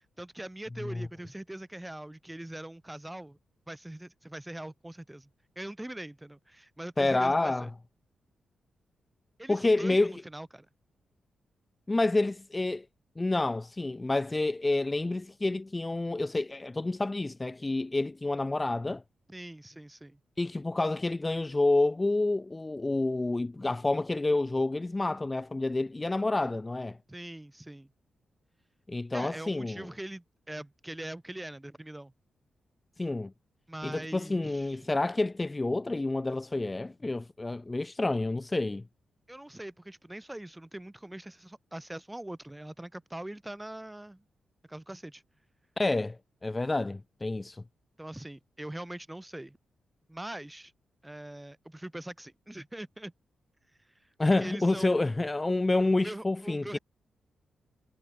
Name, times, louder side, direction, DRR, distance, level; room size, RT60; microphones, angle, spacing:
voice 1, 0.0-3.4 3.7-5.3 5.6-7.7 9.4-10.7 19.3-20.2 27.1-27.9 29.1-32.1 33.7-34.9 39.3-44.2 44.6-45.2 48.0-49.6 50.1-50.7 51.0-53.1 54.4-55.0 55.9-56.8, right 1 dB, 15° right, 3.6 m, -42 dB
voice 2, 7.0-7.7 9.5-10.1 11.9-12.8 13.2-19.0 20.4-27.0 28.9-29.9 33.0-33.3 33.8-38.8 45.8-46.2 46.4-47.6 54.2-56.8, left 2 dB, 25° left, 0.6 m, -28 dB
supercardioid pair, 50°, 0 cm